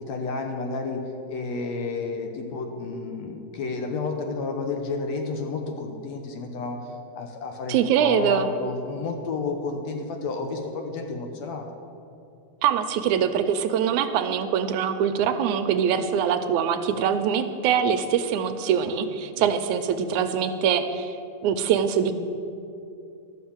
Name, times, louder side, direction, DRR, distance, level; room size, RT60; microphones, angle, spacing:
voice 1, 0.1-11.7 19.4-19.5, left 4 dB, 70° left, 4 dB, 1.9 m, -31 dB
voice 2, 7.7-8.5 12.6-21.1 21.4-22.1, right 8 dB, 80° right, 8 dB, 2.0 m, -23 dB
12.5 x 6.5 x 8.6 m, 2.6 s
omnidirectional pair, 3.5 m